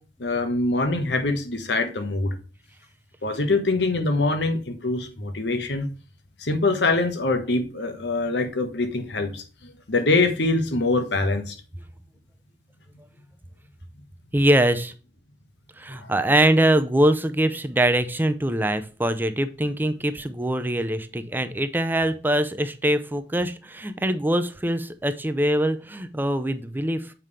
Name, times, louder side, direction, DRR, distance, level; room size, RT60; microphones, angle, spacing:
voice 1, 0.2-2.3 3.2-5.9 6.4-11.6, left 2 dB, 75° left, 7 dB, 1.2 m, -24 dB
voice 2, 14.3-14.9 15.8-27.1, right 1 dB, 10° right, 10 dB, 0.6 m, -23 dB
7.5 x 5.3 x 3.3 m, 0.36 s
head